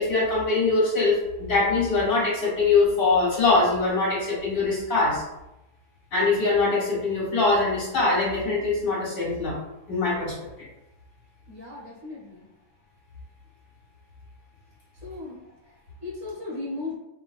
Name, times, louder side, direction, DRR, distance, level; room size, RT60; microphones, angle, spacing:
voice 1, 0.0-5.2 6.1-9.6 9.9-10.5, left 3 dB, 60° left, -7 dB, 2.2 m, -23 dB
voice 2, 11.5-12.5 15.0-15.4 16.0-16.9, left 3 dB, 60° right, -6 dB, 2.2 m, -36 dB
4.9 x 3.8 x 2.4 m, 0.92 s
omnidirectional pair, 1.7 m